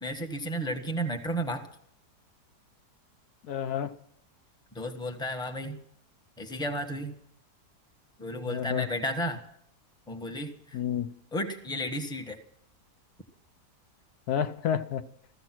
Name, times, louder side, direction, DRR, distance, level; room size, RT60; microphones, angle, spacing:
voice 1, 0.0-1.7 4.7-5.8 6.4-7.1 8.2-9.4 10.1-10.8 11.3-12.4, equal, 5° left, 4 dB, 1.2 m, -33 dB
voice 2, 3.4-4.0 8.5-8.9 10.7-11.1 14.3-15.1, left 8 dB, 70° left, 10 dB, 1.2 m, -30 dB
15.5 x 15.0 x 6.0 m, 0.70 s
omnidirectional pair, 1.8 m